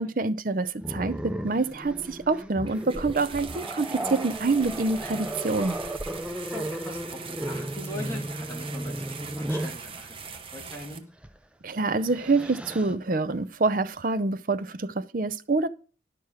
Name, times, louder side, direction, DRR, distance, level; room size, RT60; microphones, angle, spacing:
voice 1, 0.0-5.8 11.6-15.7, right 3 dB, 50° right, 0.6 m, -26 dB
Growling, 0.8-9.8 11.2-11.4 11.8-13.0, right 1 dB, 5° right, 0.5 m, -35 dB
sound 1, 2.6-11.0, right 5 dB, 30° right, 1.0 m, -41 dB
voice 2, 6.2-10.2 10.5-11.1, left 1 dB, 15° left, 2.6 m, -41 dB
11.0 x 6.0 x 4.8 m
head